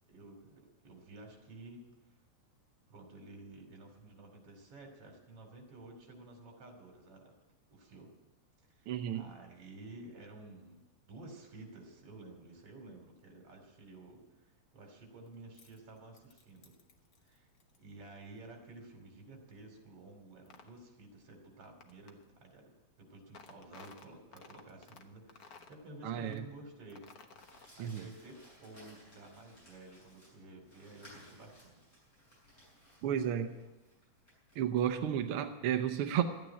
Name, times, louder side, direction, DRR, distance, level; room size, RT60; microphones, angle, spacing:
voice 1, 0.1-1.8 2.9-7.4 7.7-8.1 8.7-16.7 17.2-17.5 17.8-27.1 27.8-31.9, right 2 dB, 50° right, 3 dB, 3.8 m, -52 dB
voice 2, 8.9-9.3 26.0-26.4 27.8-28.1 33.0-33.6 34.5-36.2, right 10 dB, 75° right, 6 dB, 1.3 m, -32 dB
sound 1, 15.3-17.8 20.5-20.7 21.8-22.3 23.3-25.0 25.3-25.8 26.3-26.4 26.9-27.9, left 5 dB, 60° left, 0.9 m, -55 dB
Crumpling crinkling, 27.3-35.0, equal, 20° left, 7.4 m, -61 dB
13.0 x 9.3 x 9.9 m, 1.1 s
omnidirectional pair, 3.3 m